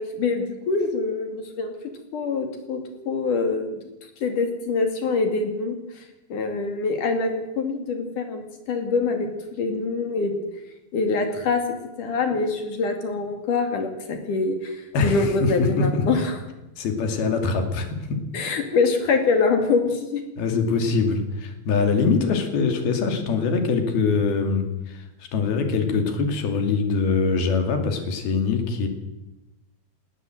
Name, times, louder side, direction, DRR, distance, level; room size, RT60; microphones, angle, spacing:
voice 1, 0.0-1.7 2.1-2.8 3.1-3.7 4.2-6.0 6.3-10.3 10.9-11.6 12.0-16.4 18.3-20.2, left 4 dB, 60° left, 5 dB, 3.7 m, -24 dB
voice 2, 14.9-16.2 16.8-18.2 20.4-25.1 25.3-28.9, left 4 dB, 75° left, 5 dB, 4.5 m, -23 dB
19.5 x 17.5 x 7.9 m, 0.99 s
omnidirectional pair, 4.4 m